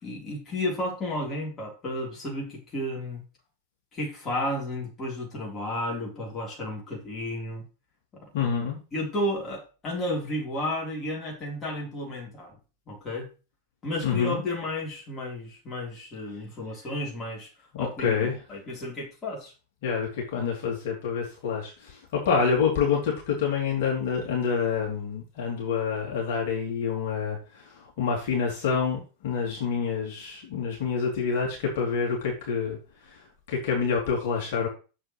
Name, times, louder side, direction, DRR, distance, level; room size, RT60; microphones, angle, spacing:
voice 1, 0.0-3.2 3.9-7.6 8.2-8.3 8.9-12.6 12.9-13.3 13.8-17.5 17.8-19.5, left 1 dB, 25° left, -2 dB, 4.1 m, -32 dB
voice 2, 8.3-8.8 14.0-14.4 17.7-18.3 19.8-34.7, left 6 dB, 50° left, -2 dB, 3.3 m, -27 dB
9.9 x 7.3 x 3.3 m, 0.33 s
figure-of-eight pair, 90°, 0 cm